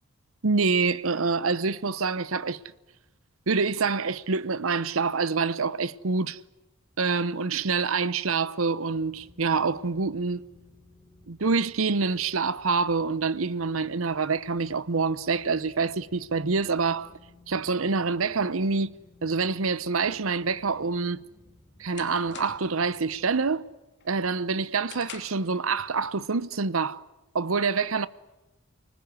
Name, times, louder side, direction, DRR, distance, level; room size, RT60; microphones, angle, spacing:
voice 1, 0.4-2.6 3.5-6.4 7.0-10.4 11.3-17.1 17.5-18.9 19.2-21.2 21.8-23.7 24.0-27.0 27.3-28.1, right 4 dB, 75° right, 0.8 m, -26 dB
sound 1, 8.9-23.6, left 2 dB, 25° left, 4.1 m, -57 dB
sound 2, 21.1-22.8 23.2-23.6 24.0-25.5, left 7 dB, 55° left, 2.8 m, -46 dB
25.0 x 20.0 x 9.5 m
head